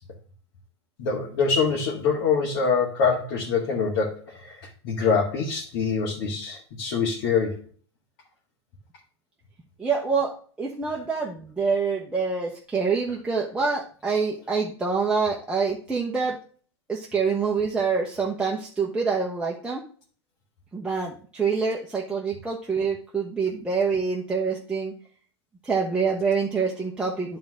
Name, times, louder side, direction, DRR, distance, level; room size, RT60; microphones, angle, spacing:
voice 1, 1.0-7.6, left 5 dB, 55° left, -3 dB, 1.9 m, -25 dB
voice 2, 9.8-16.4 16.9-19.8 20.7-24.9 25.6-27.4, right 5 dB, 5° right, -3 dB, 1.1 m, -26 dB
9.4 x 3.8 x 5.9 m, 0.43 s
hypercardioid pair, 110°, 14 cm